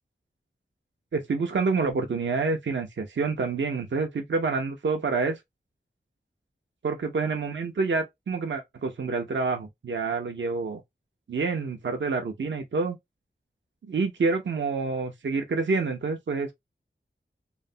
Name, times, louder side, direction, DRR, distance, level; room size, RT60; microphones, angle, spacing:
voice 1, 1.1-5.4 6.8-10.8 11.3-13.0 13.8-16.5, right 4 dB, 65° right, 0.6 m, -27 dB
3.1 x 2.0 x 2.4 m
wide cardioid pair, 70°, 20 cm